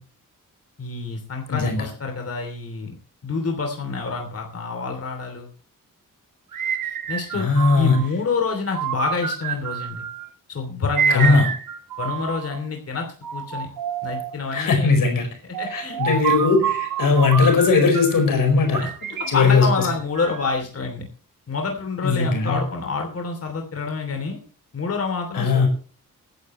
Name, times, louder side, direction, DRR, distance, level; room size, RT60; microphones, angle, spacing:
voice 1, 0.8-3.0 3.2-5.5 7.1-7.5 7.7-10.0 10.5-11.5 12.0-13.7 14.0-14.9 15.4-16.0 18.8-18.9 19.2-21.1 21.5-24.4 24.7-25.7, left 4 dB, 45° left, 3 dB, 3.0 m, -27 dB
voice 2, 1.5-1.9 7.3-8.0 11.1-11.5 14.5-15.3 15.7-18.8 19.3-19.7 22.0-22.6 25.3-25.7, left 4 dB, 85° left, 4 dB, 4.8 m, -18 dB
sound 1, 6.5-8.1 8.7-10.3 11.0-12.6 13.2-14.4 15.5-18.3 18.7-20.5, right 8 dB, 85° right, 1.4 m, -28 dB
18.5 x 11.0 x 3.1 m, 0.39 s
wide cardioid pair, 130°, 32 cm